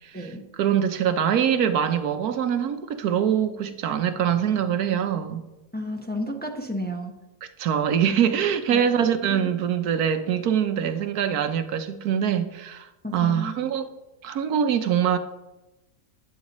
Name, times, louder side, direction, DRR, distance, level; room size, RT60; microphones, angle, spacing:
voice 1, 0.0-5.4 7.4-13.9 14.2-15.2, right 8 dB, 85° right, 1.3 m, -24 dB
voice 2, 5.7-7.1 8.7-8.8 13.0-13.5, left 1 dB, 10° left, 0.9 m, -31 dB
16.0 x 10.5 x 3.1 m
omnidirectional pair, 1.6 m